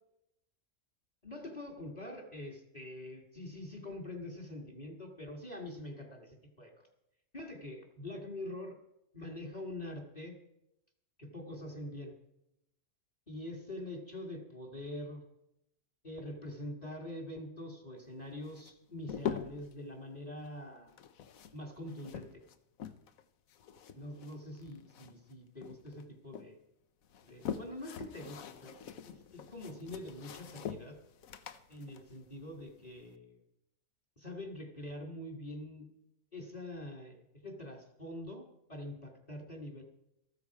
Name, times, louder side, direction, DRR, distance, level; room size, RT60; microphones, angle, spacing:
voice 1, 1.2-6.9 7.3-8.8 9.1-10.4 11.2-12.1 13.3-15.2 16.0-20.9 21.5-22.4 23.9-26.6 27.2-28.8 29.0-31.0 31.7-33.4 34.2-35.8 36.3-39.8, left 1 dB, 30° left, 1 dB, 2.0 m, -44 dB
sound 1, 18.4-19.8 20.9-23.2 23.5-25.3 25.6-26.5 27.0-33.1, left 8 dB, 85° left, 1.2 m, -44 dB
14.0 x 13.0 x 4.7 m, 0.85 s
omnidirectional pair, 1.4 m